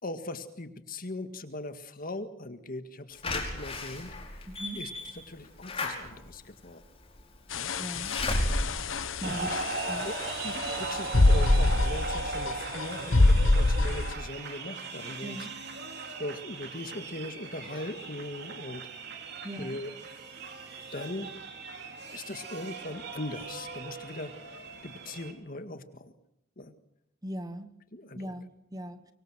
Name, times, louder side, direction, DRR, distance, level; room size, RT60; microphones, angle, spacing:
voice 1, 0.0-4.4 4.8-6.8 7.6-7.7 9.4-9.5 10.0-10.2 10.4-15.5 16.2-19.2 19.6-19.9 20.9-21.4 21.7-21.8 22.1-26.1 26.6-26.7 27.9-28.3, left 1 dB, 45° left, 8 dB, 1.8 m, -40 dB
Slam / Alarm, 3.2-10.1 10.5-10.6 10.9-11.0, left 1 dB, 30° left, 5.1 m, -34 dB
voice 2, 4.5-4.8 7.8-8.2 9.2-9.5 9.9-10.1 15.2-15.5 19.4-19.8 27.2-27.7 28.1-29.1, equal, 20° right, 10 dB, 1.2 m, -39 dB
sound 1, 7.5-14.1, left 2 dB, 80° left, 1.2 m, -25 dB
sound 2, 9.2-25.3, right 4 dB, 55° right, 3.4 m, -38 dB
24.5 x 24.0 x 6.2 m, 0.82 s
head